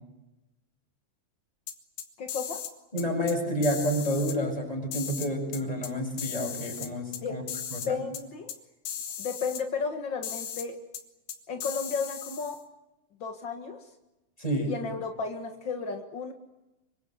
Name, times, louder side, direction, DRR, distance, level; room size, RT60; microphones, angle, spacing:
sound 1, 1.7-2.7 3.0-3.4 3.6-4.4 4.9-5.9 6.2-7.2 7.5-7.9 8.1-8.2 8.5-8.6 8.9-9.6 10.2-10.7 10.9-11.0 11.3-12.6, left 8 dB, 80° left, 3.9 m, -37 dB
voice 1, 2.2-2.6 7.2-7.3 7.8-8.5 9.2-10.8 11.5-12.6 13.2-13.8 14.6-16.3, left 5 dB, 60° left, 5 dB, 1.2 m, -33 dB
voice 2, 2.9-7.4 7.7-8.0 14.4-14.7, equal, 10° left, 1 dB, 7.5 m, -29 dB
26.0 x 24.5 x 8.1 m, 0.98 s
omnidirectional pair, 4.9 m